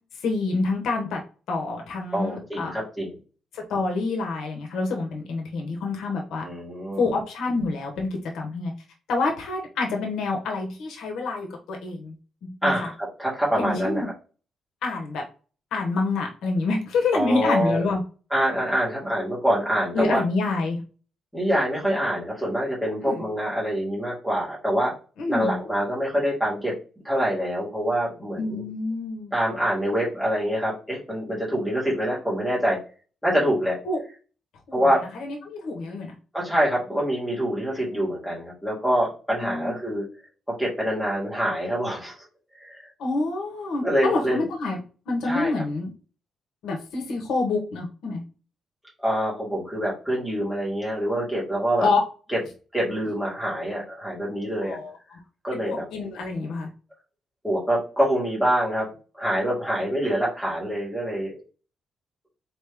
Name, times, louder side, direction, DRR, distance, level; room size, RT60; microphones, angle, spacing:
voice 1, 0.2-1.2 1.5-2.8 3.5-6.4 7.0-8.7 9.1-12.1 12.4-12.9 13.5-14.1 14.8-15.2 15.7-18.0 19.9-20.8 23.0-23.2 25.2-25.6 28.4-29.3 33.8-34.0 34.7-36.1 39.4-39.7 43.0-44.8 45.1-45.9 46.6-48.2 51.8-52.0 54.6-55.2 55.5-56.7, left 3 dB, 80° left, 2 dB, 1.1 m, -27 dB
voice 2, 2.1-3.1 6.4-7.0 12.6-12.9 13.2-14.1 17.1-17.8 18.3-20.2 21.3-24.9 25.3-26.7 27.0-28.6 29.3-32.8 33.2-33.8 34.7-35.0 36.3-40.0 40.5-42.1 42.6-42.8 43.8-44.4 45.3-45.5 49.0-51.9 52.7-54.8 55.4-55.8 57.4-58.9 59.2-61.3, equal, ahead, -6 dB, 2.2 m, -25 dB
4.3 x 3.1 x 3.4 m, 0.36 s
cardioid pair, 160°, 0 cm